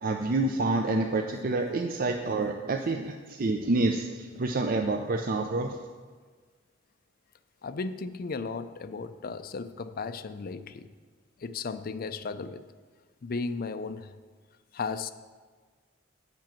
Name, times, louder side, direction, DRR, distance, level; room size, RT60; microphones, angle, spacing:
voice 1, 0.0-5.8, right 2 dB, 50° right, 4 dB, 0.5 m, -28 dB
voice 2, 7.6-10.9 11.4-12.7 13.2-14.2 14.7-15.1, left 4 dB, 50° left, 11 dB, 0.4 m, -35 dB
7.5 x 6.0 x 7.4 m, 1.5 s
head